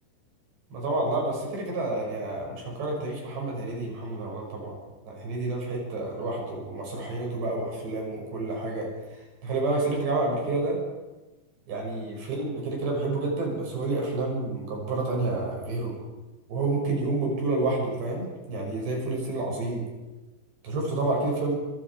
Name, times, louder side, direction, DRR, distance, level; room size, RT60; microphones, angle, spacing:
voice 1, 0.7-4.8 5.0-10.8 11.7-16.0 16.5-19.8 20.6-21.5, right 2 dB, 75° right, -1 dB, 8.5 m, -29 dB
29.5 x 26.5 x 4.9 m, 1.2 s
omnidirectional pair, 4.9 m